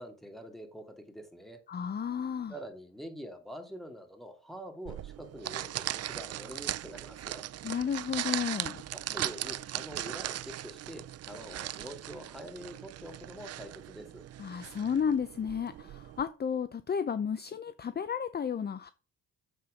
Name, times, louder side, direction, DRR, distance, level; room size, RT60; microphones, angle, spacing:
voice 1, 0.0-1.6 2.5-7.5 8.9-14.2, equal, ahead, 2.7 m, -45 dB
voice 2, 1.7-2.5 7.6-8.8 14.4-18.9, left 7 dB, 35° left, 0.7 m, -32 dB
sound 1, 4.9-16.2, right 13 dB, 55° right, 0.5 m, -39 dB
7.6 x 6.8 x 5.2 m
cardioid pair, 90°, 30 cm